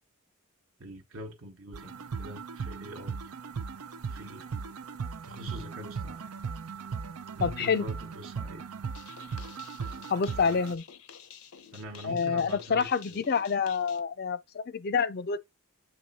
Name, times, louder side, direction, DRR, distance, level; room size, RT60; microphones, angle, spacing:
voice 1, 0.8-3.3 4.0-4.5 5.2-6.3 7.4-8.7 10.3-10.6 11.7-13.2, right 1 dB, 65° right, 1.0 m, -44 dB
sound 1, 1.7-10.7, right 5 dB, 90° right, 0.6 m, -38 dB
voice 2, 7.4-7.8 10.1-10.8 12.0-15.4, left 6 dB, 45° left, 0.4 m, -27 dB
sound 2, 8.9-14.0, left 8 dB, 80° left, 0.7 m, -51 dB
7.8 x 3.1 x 4.1 m
head